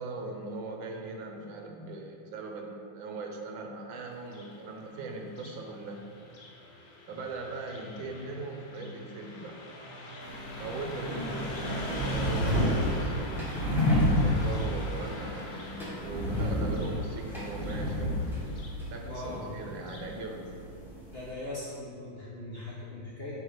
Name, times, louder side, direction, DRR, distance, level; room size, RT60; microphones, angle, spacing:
voice 1, 0.0-6.1 7.1-9.6 10.6-13.4 13.9-18.3 18.9-20.6, right 2 dB, 80° right, 2 dB, 1.4 m, -40 dB
Car passing by, 4.2-20.1, equal, 85° left, 0.5 m, -41 dB
sound 1, 10.2-21.3, left 1 dB, ahead, 0.8 m, -31 dB
voice 2, 19.0-19.5 21.1-23.4, left 2 dB, 45° left, -8 dB, 0.8 m, -40 dB
5.7 x 3.1 x 5.7 m, 2.3 s
omnidirectional pair, 2.1 m